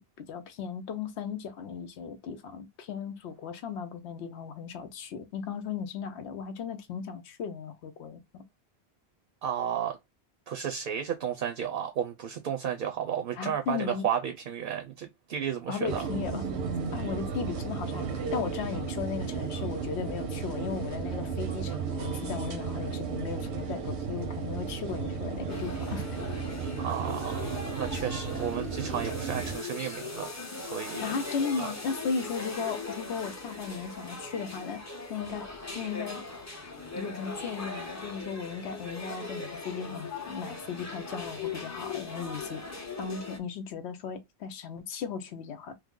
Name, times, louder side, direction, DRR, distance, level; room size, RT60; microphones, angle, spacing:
voice 1, 0.0-8.4 13.4-14.0 15.7-16.4 16.9-26.0 31.0-34.8 35.1-35.5 35.7-36.3 36.9-42.6 43.0-45.7, left 6 dB, 85° left, 0.9 m, -36 dB
voice 2, 9.4-10.0 10.5-16.1 26.8-30.3 30.6-31.1 31.6-31.7, right 8 dB, 65° right, 0.7 m, -33 dB
sound 1, 15.9-29.6, right 5 dB, 85° right, 1.0 m, -34 dB
sound 2, 25.5-43.4, left 3 dB, 20° left, 0.6 m, -40 dB
3.1 x 2.0 x 3.6 m
omnidirectional pair, 1.1 m